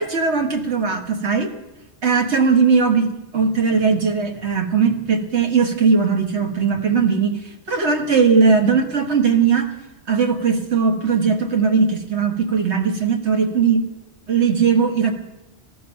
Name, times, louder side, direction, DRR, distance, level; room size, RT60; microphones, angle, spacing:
voice 1, 0.0-1.5 2.0-7.4 7.7-9.7 10.1-13.9 14.3-15.1, right 5 dB, 75° right, 4 dB, 1.8 m, -18 dB
15.0 x 11.5 x 7.1 m, 1.1 s
omnidirectional pair, 1.2 m